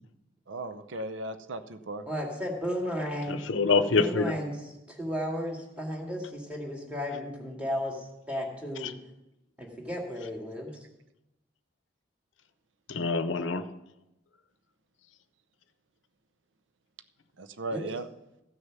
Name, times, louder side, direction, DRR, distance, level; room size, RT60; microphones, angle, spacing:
voice 1, 0.5-2.0 17.4-18.1, right 2 dB, 80° right, 12 dB, 0.7 m, -36 dB
voice 2, 2.1-3.4 3.9-4.5 4.9-8.9 9.6-10.8 17.7-17.8, equal, 5° right, -1 dB, 2.3 m, -34 dB
voice 3, 3.3-4.4 8.8-8.9 12.9-13.7, left 4 dB, 85° left, 11 dB, 0.7 m, -26 dB
14.5 x 6.5 x 6.1 m, 0.93 s
head